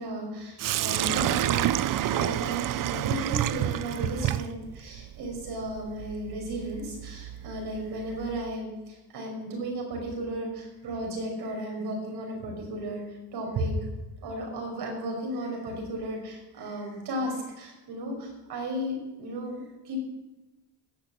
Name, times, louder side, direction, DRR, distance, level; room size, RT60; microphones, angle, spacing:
voice 1, 0.0-1.6 2.0-13.0 13.3-13.7 14.2-20.0, right 1 dB, 70° right, 0 dB, 5.8 m, -34 dB
Sink (filling or washing), 0.6-8.5, right 13 dB, 55° right, 0.5 m, -30 dB
16.5 x 6.6 x 7.7 m, 1.1 s
cardioid pair, 95°, 40 cm